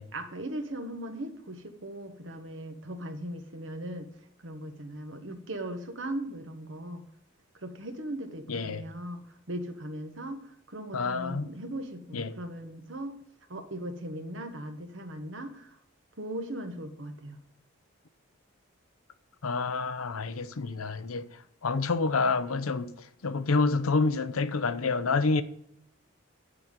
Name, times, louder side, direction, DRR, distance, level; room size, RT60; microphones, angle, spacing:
voice 1, 0.1-4.1 4.4-7.1 7.6-9.2 9.5-13.2 13.5-15.7 16.2-17.4, right 1 dB, 65° right, 1.3 m, -38 dB
voice 2, 8.5-8.8 10.9-11.5 12.1-12.4 19.4-21.3 21.6-22.9 23.2-25.4, left 3 dB, 90° left, 0.7 m, -28 dB
11.0 x 4.1 x 7.5 m
head